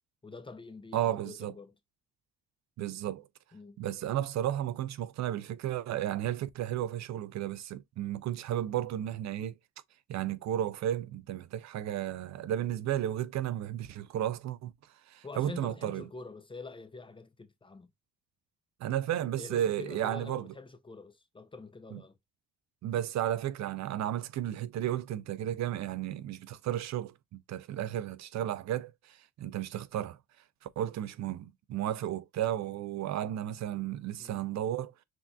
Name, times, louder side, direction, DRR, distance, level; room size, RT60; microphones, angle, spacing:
voice 1, 0.2-1.7 3.5-3.8 15.2-17.9 19.4-22.2 34.2-34.4, left 3 dB, 15° left, 0.5 m, -46 dB
voice 2, 0.9-1.5 2.8-3.3 3.8-9.6 10.1-14.7 15.1-16.1 18.8-20.5 21.9-22.0 22.8-30.2 30.6-35.0, right 11 dB, 65° right, 0.5 m, -33 dB
6.1 x 2.5 x 2.3 m
cardioid pair, 90°, 30 cm